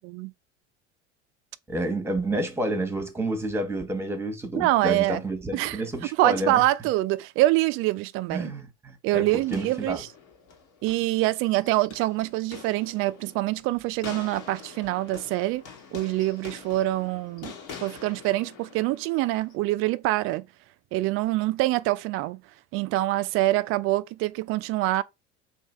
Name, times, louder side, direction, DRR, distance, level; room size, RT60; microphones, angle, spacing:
voice 1, 1.7-6.6 8.3-10.0, right 1 dB, 5° right, 1.1 m, -29 dB
voice 2, 4.6-5.2 5.5-5.8 6.2-8.5 9.0-10.1 10.8-15.6 15.9-17.5 17.8-20.5 20.9-22.4 22.7-25.0, right 17 dB, 40° right, 0.4 m, -25 dB
sound 1, 9.2-19.5, left 6 dB, 55° left, 1.4 m, -45 dB
3.3 x 2.8 x 4.2 m
figure-of-eight pair, 75°, 36 cm